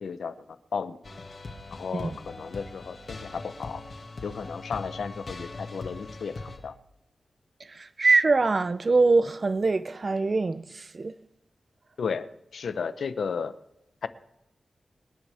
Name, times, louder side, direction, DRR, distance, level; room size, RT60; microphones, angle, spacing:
voice 1, 0.0-1.0 1.7-3.8 4.2-6.7 12.0-13.5 14.0-14.1, left 5 dB, 85° left, 0.8 m, -34 dB
sound 1, 1.0-6.6, left 2 dB, 45° left, 2.0 m, -41 dB
voice 2, 7.7-11.1, right 3 dB, 35° right, 0.6 m, -23 dB
26.5 x 10.0 x 3.5 m
wide cardioid pair, 165°, 0 cm